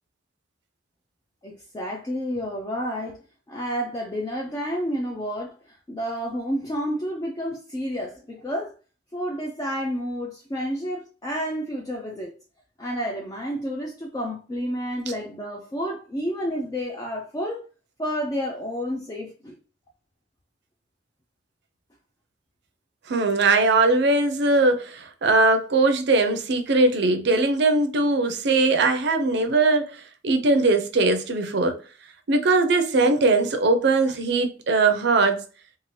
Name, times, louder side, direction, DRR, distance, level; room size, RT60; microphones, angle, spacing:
voice 1, 1.4-3.2 3.5-8.7 9.1-12.3 12.8-17.7 18.0-19.6, equal, 20° left, 0.4 m, -30 dB
voice 2, 23.1-31.8 32.3-35.4, right 3 dB, 60° right, 0.5 m, -20 dB
2.7 x 2.4 x 3.0 m
head